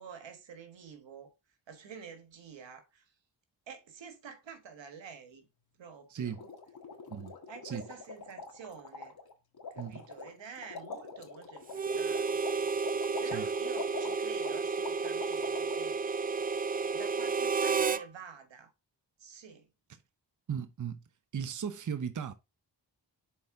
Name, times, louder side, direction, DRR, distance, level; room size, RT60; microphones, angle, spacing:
voice 1, 0.0-1.3 1.7-3.1 3.7-5.5 5.8-6.5 7.5-9.2 9.7-12.7 12.9-16.0 16.9-18.7 19.2-19.7, right 6 dB, 85° right, 1.5 m, -49 dB
voice 2, 6.1-6.4 7.1-7.3 7.6-7.8 9.8-10.0 13.2-13.4 20.5-21.0 21.3-22.3, right 7 dB, 45° right, 0.8 m, -36 dB
sound 1, 6.3-15.8, left 4 dB, 55° left, 1.6 m, -44 dB
Harmonica, 11.7-18.0, right 5 dB, 20° right, 0.3 m, -31 dB
7.0 x 4.5 x 3.6 m
cardioid pair, 60°, 43 cm